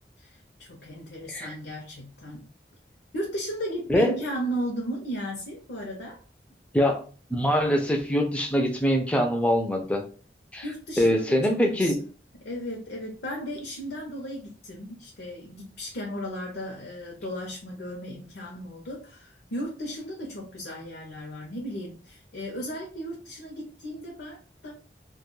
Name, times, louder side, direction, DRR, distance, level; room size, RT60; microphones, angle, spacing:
voice 1, 0.2-2.5 3.1-6.2 10.6-11.9 12.4-24.7, equal, 80° left, -1 dB, 0.6 m, -35 dB
voice 2, 7.3-10.0 10.5-10.6 11.0-12.0, equal, 5° left, 3 dB, 0.3 m, -23 dB
2.2 x 2.2 x 3.0 m, 0.39 s
head